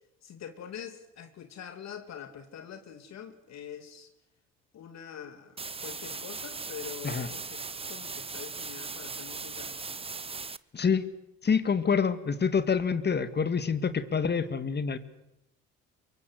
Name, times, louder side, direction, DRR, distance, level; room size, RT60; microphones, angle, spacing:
voice 1, 0.2-4.1 4.7-7.6 7.9-10.1, left 8 dB, 60° left, 7 dB, 2.6 m, -44 dB
sound 1, 5.6-10.6, right 4 dB, 20° right, 0.9 m, -38 dB
voice 2, 10.7-11.1 11.4-15.0, left 6 dB, 35° left, 12 dB, 2.1 m, -27 dB
24.0 x 23.5 x 8.2 m, 0.88 s
supercardioid pair, 80°, 30 cm